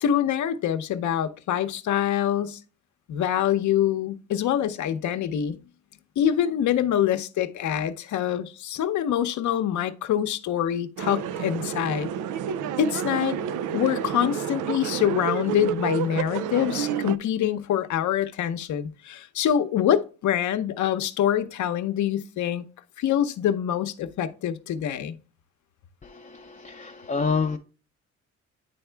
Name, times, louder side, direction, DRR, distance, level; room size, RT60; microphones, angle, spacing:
voice 1, 0.0-2.6 3.1-5.6 6.2-12.1 12.8-13.4 13.7-22.6 23.0-25.2, left 10 dB, 70° left, 0.8 m, -25 dB
sound 1, 11.0-17.2, right 9 dB, 80° right, 0.5 m, -30 dB
voice 2, 26.0-27.6, left 5 dB, 25° left, 0.6 m, -28 dB
10.0 x 3.5 x 3.3 m
cardioid pair, 90°, 30 cm